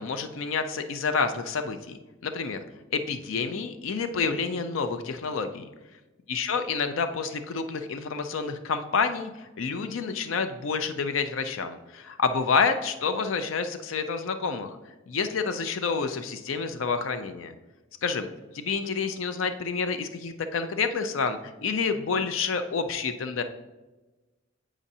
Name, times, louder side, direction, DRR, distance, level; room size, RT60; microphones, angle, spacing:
voice 1, 0.0-2.6 2.9-5.7 6.3-14.8 15.1-17.5 18.0-18.3 18.5-23.4, left 5 dB, 80° left, 9 dB, 0.5 m, -28 dB
8.5 x 5.0 x 2.7 m, 1.1 s
head